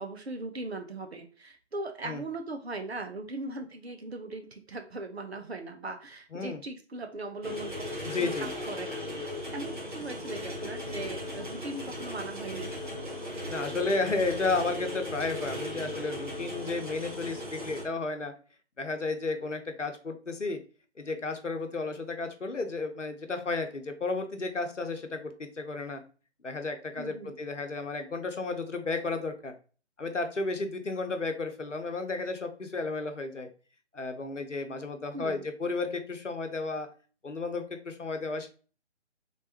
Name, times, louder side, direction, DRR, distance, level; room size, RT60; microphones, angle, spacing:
voice 1, 0.0-7.9 8.2-12.7 27.0-27.4 35.1-35.4, right 2 dB, 60° right, 5 dB, 0.9 m, -39 dB
sound 1, 7.4-17.8, left 1 dB, 45° right, 1.2 m, -37 dB
voice 2, 8.0-8.5 13.5-18.3 18.8-20.6 21.0-26.0 26.4-29.5 30.0-33.5 33.9-36.9 37.2-38.5, left 3 dB, 90° left, 6 dB, 0.8 m, -33 dB
3.3 x 3.2 x 2.8 m, 0.38 s
figure-of-eight pair, 145°, 35 cm